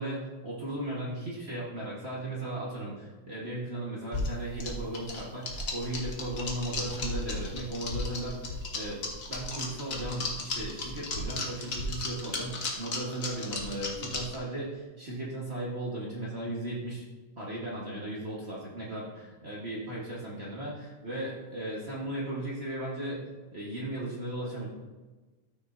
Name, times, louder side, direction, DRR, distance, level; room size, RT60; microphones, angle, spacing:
voice 1, 0.0-9.0 9.3-17.0 17.4-23.2 23.5-24.7, right 1 dB, 45° right, -6 dB, 0.8 m, -36 dB
sound 1, 4.1-14.4, left 2 dB, 75° left, 0.7 m, -35 dB
13.0 x 6.6 x 2.7 m, 1.2 s
omnidirectional pair, 3.5 m